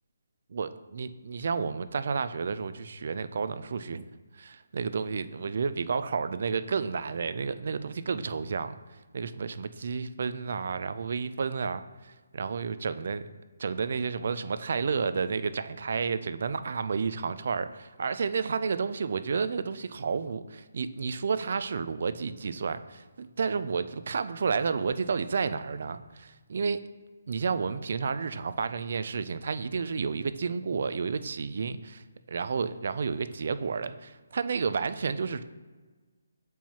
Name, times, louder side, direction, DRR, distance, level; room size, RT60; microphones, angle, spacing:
voice 1, 0.5-8.8 9.1-13.2 13.6-26.8 27.3-35.4, right 5 dB, 50° right, 12 dB, 0.3 m, -31 dB
7.1 x 4.5 x 2.9 m, 1.3 s
hypercardioid pair, 170°, 0 cm